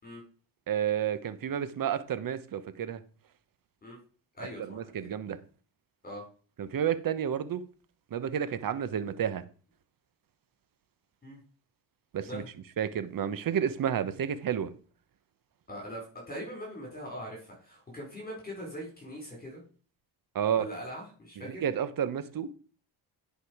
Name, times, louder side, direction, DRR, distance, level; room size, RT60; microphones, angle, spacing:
voice 1, 0.7-3.0 4.7-5.4 6.6-7.6 8.1-9.4 12.1-12.4 12.8-14.7 20.3-20.7 21.6-22.5, right 9 dB, 50° right, 13 dB, 1.1 m, -30 dB
voice 2, 4.3-5.1 6.0-6.3 11.2-11.4 12.3-12.5 15.7-19.6 20.5-21.6, equal, 20° left, -1 dB, 5.3 m, -41 dB
10.5 x 5.2 x 4.9 m, 0.41 s
cardioid pair, 80°, 44 cm